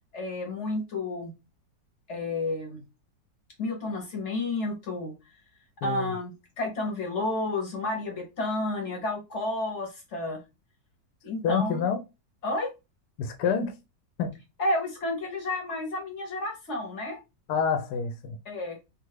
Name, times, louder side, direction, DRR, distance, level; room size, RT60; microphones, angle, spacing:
voice 1, 0.1-1.3 2.1-2.8 3.6-5.1 5.8-10.4 11.2-11.8 12.4-12.7 14.6-17.2 18.4-18.8, left 2 dB, 50° left, 1.0 m, -31 dB
voice 2, 11.4-12.0 13.2-13.7 14.2-14.3 17.5-18.3, left 6 dB, 75° left, 1.1 m, -27 dB
2.7 x 2.4 x 3.1 m
omnidirectional pair, 1.9 m